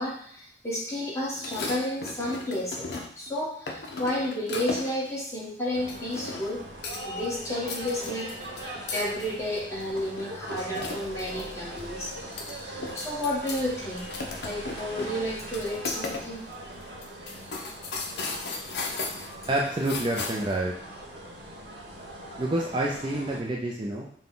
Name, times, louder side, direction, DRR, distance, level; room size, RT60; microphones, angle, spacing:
voice 1, 0.0-2.9 3.2-6.6 7.0-8.3 8.6-12.1 12.6-14.1 14.4-16.4, left 1 dB, 15° left, -6 dB, 1.3 m, -31 dB
sound 1, 1.3-3.3 3.7-5.1 5.9-6.6 6.8-7.3 7.6-11.5 11.8-11.9 12.2-13.6 13.9-16.3 16.5-16.6 17.0-20.6, left 3 dB, 65° left, 0.6 m, -36 dB
sound 2, 5.7-23.4, right 1 dB, 70° right, 1.1 m, -41 dB
voice 2, 19.5-20.7 22.4-24.1, right 1 dB, 25° right, -2 dB, 0.4 m, -28 dB
5.8 x 2.2 x 3.7 m, 0.65 s
head